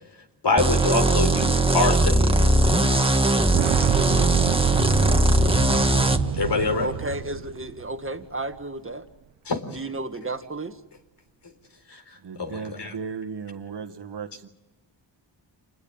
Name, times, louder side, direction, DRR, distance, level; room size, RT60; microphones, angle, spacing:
voice 1, 0.4-2.2 6.4-6.9 9.5-9.6 11.9-12.0 12.4-12.9, left 3 dB, 65° left, 4.2 m, -24 dB
sound 1, 0.6-6.2, right 2 dB, 10° right, 1.7 m, -20 dB
Boom, 3.5-8.3 8.5-8.6 9.8-9.9, right 11 dB, 80° right, 0.8 m, -29 dB
voice 2, 6.8-9.1 9.7-10.8, right 2 dB, 30° right, 1.7 m, -32 dB
voice 3, 12.2-14.5, right 5 dB, 65° right, 1.8 m, -36 dB
27.5 x 21.0 x 8.9 m
cardioid pair, 75°, 45 cm